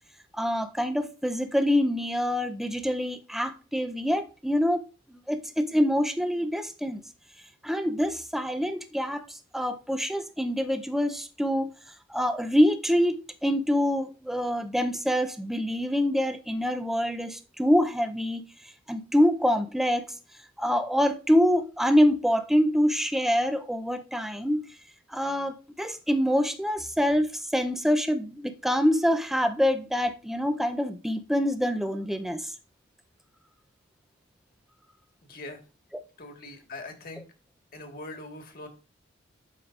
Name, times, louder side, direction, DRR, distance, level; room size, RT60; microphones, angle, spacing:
voice 1, 0.4-4.8 5.1-7.0 7.6-11.7 12.1-18.4 18.9-20.1 20.6-24.6 25.1-32.5, equal, ahead, 0.5 m, -25 dB
voice 2, 35.2-35.6 36.2-37.2 37.7-38.7, left 2 dB, 50° left, 1.6 m, -42 dB
12.0 x 5.0 x 2.4 m
head